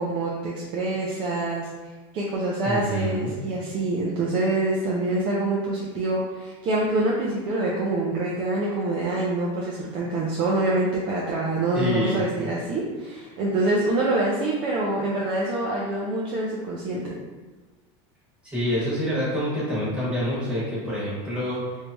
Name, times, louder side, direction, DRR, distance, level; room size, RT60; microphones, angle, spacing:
voice 1, 0.0-1.7 2.1-17.2, right 2 dB, 35° right, -5 dB, 0.5 m, -25 dB
voice 2, 2.6-3.4 11.7-12.8 18.4-21.8, equal, 5° right, -10 dB, 1.3 m, -27 dB
3.2 x 2.7 x 3.3 m, 1.3 s
supercardioid pair, 165°, 15 cm